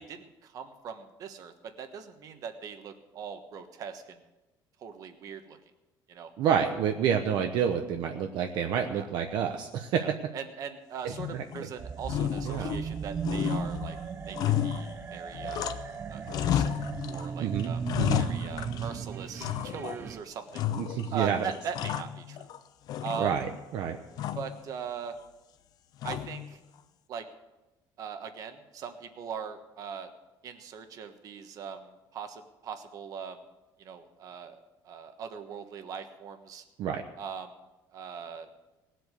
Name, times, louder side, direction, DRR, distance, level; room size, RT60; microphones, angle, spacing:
voice 1, 0.0-4.2 4.8-5.6 6.1-6.3 8.9-9.1 10.0-14.0 14.3-15.6 16.1-17.8 18.2-20.7 21.1-22.5 23.0-23.4 24.3-25.1 26.0-26.6 27.1-27.3 28.0-30.1 30.4-33.4 33.8-34.6 34.8-36.6 37.2-37.6 37.9-38.5, right 7 dB, 45° right, 7 dB, 1.3 m, -40 dB
voice 2, 6.4-10.0 11.3-11.4 12.4-12.7 17.4-17.7 18.0-18.3 20.8-21.5 23.2-24.0 36.8-37.0, right 8 dB, 65° right, 4 dB, 1.0 m, -28 dB
sound 1, 11.1-11.7 12.0-13.0 13.2-16.0 16.3-17.3 17.6-19.0 19.4-20.1 20.5-21.2 21.5-22.6 22.9-23.6 24.2-24.6 26.0-26.5, left 10 dB, 50° left, 0.7 m, -32 dB
sound 2, 11.8-20.2, right 6 dB, 25° right, 0.4 m, -37 dB
19.0 x 7.9 x 6.6 m, 1.0 s
cardioid pair, 170°, 8 cm